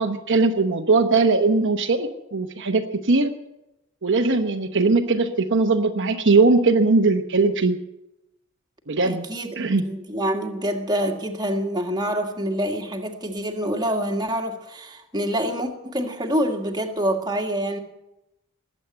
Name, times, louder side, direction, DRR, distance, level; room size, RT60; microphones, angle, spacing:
voice 1, 0.0-3.3 4.0-7.8 8.9-9.2 9.6-9.9, right 3 dB, 55° right, 4 dB, 1.0 m, -20 dB
voice 2, 9.0-17.8, equal, 20° right, 2 dB, 1.7 m, -26 dB
20.5 x 8.3 x 8.1 m, 0.92 s
head